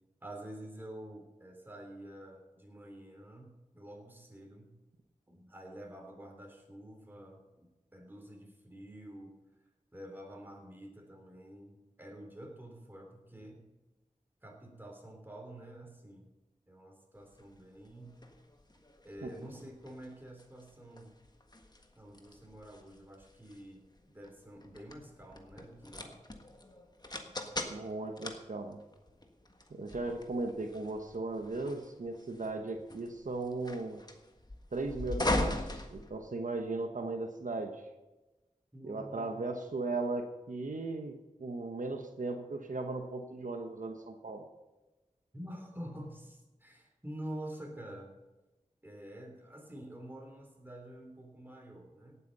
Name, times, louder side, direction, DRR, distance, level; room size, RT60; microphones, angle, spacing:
voice 1, 0.2-4.7 5.3-7.4 7.9-9.4 9.9-13.6 14.4-16.3 16.7-18.2 19.0-21.1 21.9-26.2 28.0-28.1 30.0-30.1 38.7-39.5 45.3-48.1 48.8-52.2, right 1 dB, 15° right, 1 dB, 3.5 m, -48 dB
sound 1, 17.3-36.7, left 1 dB, 30° left, 1.5 m, -41 dB
voice 2, 27.7-28.8 29.7-34.0 34.7-37.9 38.8-44.5, right 3 dB, 75° right, 4 dB, 1.2 m, -37 dB
17.5 x 8.4 x 5.5 m, 1.1 s
wide cardioid pair, 70°, 13 cm